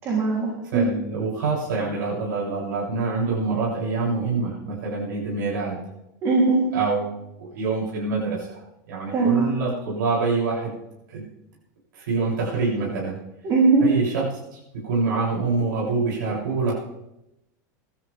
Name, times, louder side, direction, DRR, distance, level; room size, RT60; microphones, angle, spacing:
voice 1, 0.0-0.8 6.2-6.6 9.1-9.5 13.4-13.8, right 4 dB, 25° right, -3 dB, 3.7 m, -20 dB
voice 2, 0.6-5.8 6.7-8.6 8.9-10.7 11.1-11.2 11.9-13.1 13.8-14.2 14.5-16.7, right 4 dB, 90° right, -5 dB, 8.0 m, -26 dB
25.0 x 13.0 x 3.7 m, 0.89 s
supercardioid pair, 180°, 10 cm